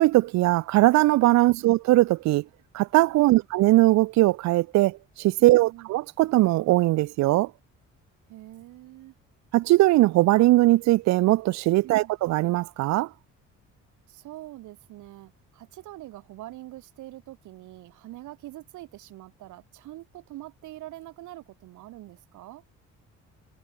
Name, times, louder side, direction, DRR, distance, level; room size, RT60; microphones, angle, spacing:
voice 1, 0.0-2.4 2.7-7.5 9.5-13.1, right 18 dB, 70° right, 0.5 m, -20 dB
voice 2, 5.4-5.9 8.3-9.1 11.8-12.1 14.1-22.6, right 16 dB, 90° right, 3.1 m, -44 dB
cardioid pair, 130°, 29 cm